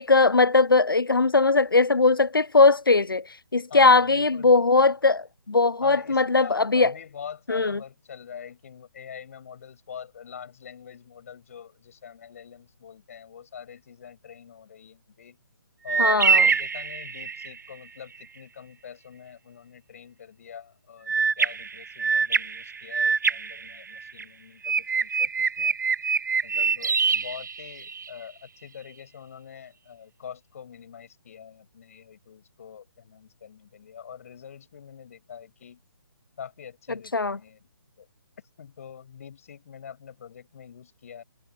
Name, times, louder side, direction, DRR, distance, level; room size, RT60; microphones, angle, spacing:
voice 1, 0.0-3.3 3.5-6.9 7.5-7.8 16.0-16.5 37.1-37.4, left 3 dB, 70° left, 0.7 m, -20 dB
voice 2, 3.7-5.2 5.8-15.4 15.8-25.7 26.4-35.8 36.4-37.6 38.0-38.1 38.4-41.2, left 8 dB, 40° left, 6.4 m, -44 dB
sound 1, 15.9-17.6 21.1-24.2 24.6-28.1, right 5 dB, 55° right, 0.5 m, -25 dB
figure-of-eight pair, 140°, 12 cm